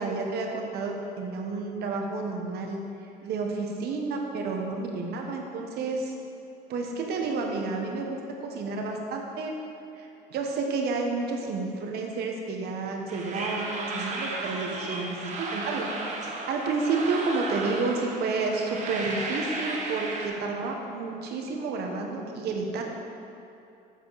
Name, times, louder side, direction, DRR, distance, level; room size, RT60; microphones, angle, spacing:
voice 1, 0.0-2.8 3.2-6.1 6.7-9.5 10.0-15.9 16.2-22.8, right 3 dB, 70° right, 1 dB, 1.1 m, -30 dB
sound 1, 13.1-20.3, right 2 dB, 45° right, 1.1 m, -34 dB
7.9 x 6.8 x 4.0 m, 2.7 s
cardioid pair, 110°, 17 cm